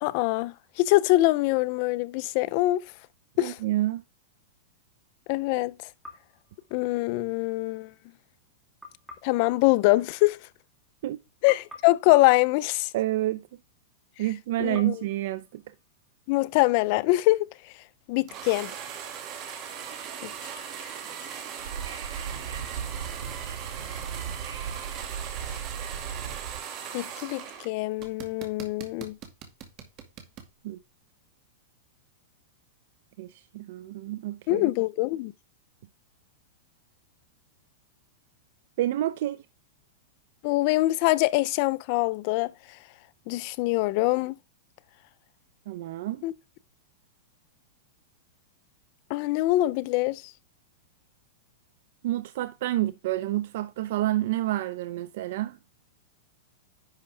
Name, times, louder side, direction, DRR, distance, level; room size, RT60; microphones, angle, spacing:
voice 1, 0.0-2.8 3.4-3.6 5.3-5.7 6.7-7.9 9.2-10.4 11.4-12.9 14.6-14.9 16.3-17.5 18.1-18.7 20.2-20.3 26.9-29.1 34.5-35.3 40.4-42.5 43.3-44.4 46.2-46.3 49.1-50.2, left 19 dB, 45° left, 0.6 m, -24 dB
voice 2, 3.4-4.0 11.0-11.2 12.9-13.4 14.2-15.6 30.6-30.8 33.2-34.6 38.8-39.4 45.7-46.2 52.0-55.6, right 15 dB, 60° right, 0.6 m, -29 dB
sound 1, 6.0-7.4 8.8-11.1 11.5-13.7 14.7-16.6, left 2 dB, 5° right, 2.5 m, -51 dB
sound 2, 18.3-27.7 28.0-30.5, right 8 dB, 30° right, 2.2 m, -39 dB
Wind / Subway metro underground, 21.6-26.6, right 7 dB, 90° right, 2.3 m, -37 dB
10.5 x 5.5 x 3.4 m
supercardioid pair, 155°, 0 cm